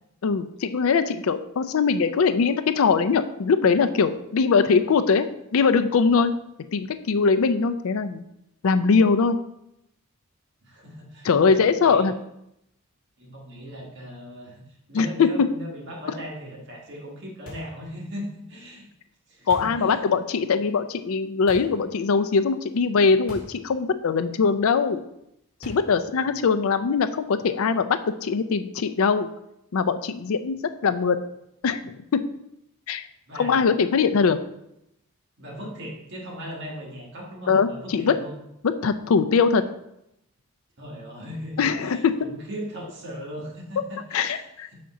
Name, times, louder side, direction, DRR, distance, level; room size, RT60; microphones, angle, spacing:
voice 1, 0.2-5.3 5.5-6.3 6.7-8.2 8.6-9.4 11.2-12.1 14.9-15.5 19.5-25.0 25.6-29.3 29.7-30.6 30.8-31.2 31.6-32.3 32.9-33.1 33.4-34.4 37.5-38.2 38.6-39.6 41.6-42.2 44.1-44.7, left 5 dB, 70° left, 10 dB, 0.4 m, -21 dB
voice 2, 10.6-11.6 11.8-12.0 13.2-14.6 14.9-18.9 19.3-20.0 33.3-33.6 35.4-38.3 40.8-44.5, equal, 50° right, -2 dB, 1.7 m, -38 dB
sound 1, 17.5-17.8 19.5-19.9 21.5-21.8 23.3-23.6 23.9-24.0 25.6-26.0, equal, 25° left, 2.1 m, -42 dB
5.8 x 5.2 x 3.7 m, 0.81 s
head